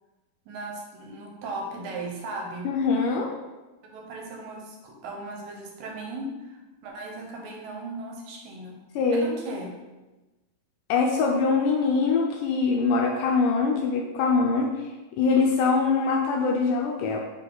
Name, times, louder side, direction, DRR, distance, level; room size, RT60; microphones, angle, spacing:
voice 1, 0.5-2.7 3.9-8.8 9.1-9.8, right 2 dB, 75° right, 1 dB, 2.5 m, -37 dB
voice 2, 2.7-3.3 9.0-9.3 10.9-14.7 15.1-17.2, left 4 dB, 80° left, 1 dB, 2.0 m, -23 dB
5.2 x 5.1 x 3.8 m, 1.1 s
omnidirectional pair, 4.1 m